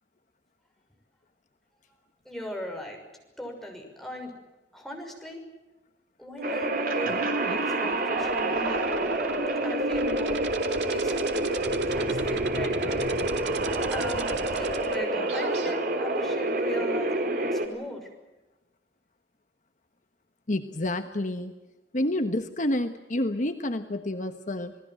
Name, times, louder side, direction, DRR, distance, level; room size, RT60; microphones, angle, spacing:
voice 1, 2.2-3.0 3.4-4.3 4.7-5.4 6.2-9.0 9.6-10.4 10.9-11.4 11.9-13.1 13.9-18.1, equal, ahead, 1 dB, 6.2 m, -38 dB
sound 1, 6.4-17.7, right 2 dB, 55° right, 3.6 m, -28 dB
sound 2, 6.4-15.7, right 2 dB, 85° right, 2.4 m, -34 dB
voice 2, 20.5-21.5 21.9-24.8, left 1 dB, 45° left, 7 dB, 1.2 m, -29 dB
29.0 x 19.5 x 7.8 m, 1.1 s
head